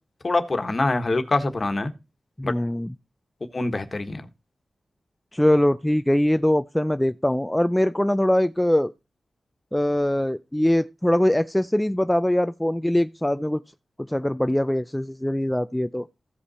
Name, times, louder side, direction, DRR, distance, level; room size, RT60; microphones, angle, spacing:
voice 1, 0.2-1.9 2.4-2.5 3.5-4.3, left 2 dB, 45° left, 1.4 m, -24 dB
voice 2, 2.4-2.9 5.3-8.9 9.7-13.6 14.1-16.1, left 1 dB, 10° left, 0.4 m, -22 dB
15.0 x 5.3 x 4.2 m
cardioid pair, 50°, 0 cm